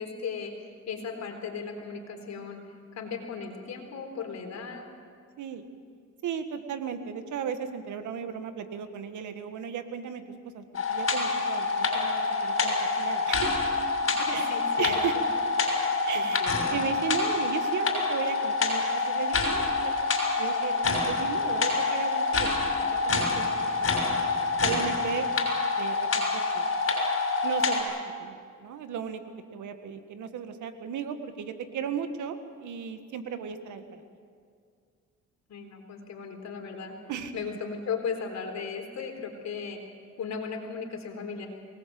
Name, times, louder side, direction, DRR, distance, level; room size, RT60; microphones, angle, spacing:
voice 1, 0.0-4.9 14.0-15.2 16.1-16.8 35.5-37.0 37.3-39.8 40.2-41.5, left 5 dB, 60° left, 4 dB, 3.9 m, -36 dB
voice 2, 6.2-10.2 10.5-13.5 14.3-14.5 14.8-15.1 16.1-19.9 20.4-22.5 23.0-23.9 24.6-25.3 25.8-26.1 26.5-26.7 27.4-29.2 29.5-34.0 37.1-37.3, right 7 dB, 75° right, 8 dB, 1.8 m, -35 dB
sound 1, 10.7-27.8, left 3 dB, 45° left, 6.5 m, -27 dB
24.0 x 19.5 x 7.9 m, 2.2 s
cardioid pair, 90°, 30 cm